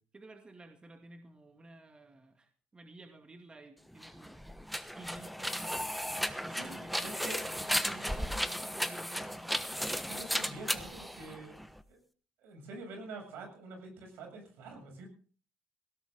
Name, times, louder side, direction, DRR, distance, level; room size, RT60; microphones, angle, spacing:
voice 1, 0.1-4.4 4.9-9.7, right 2 dB, 25° right, 4 dB, 2.4 m, -52 dB
sound 1, 3.9-11.8, equal, ahead, 1.2 m, -35 dB
voice 2, 6.5-7.4 10.0-11.6 11.9-12.0 12.4-15.1, right 2 dB, 75° right, 3 dB, 7.4 m, -46 dB
17.5 x 17.0 x 3.9 m, 0.41 s
supercardioid pair, 70°, 4 cm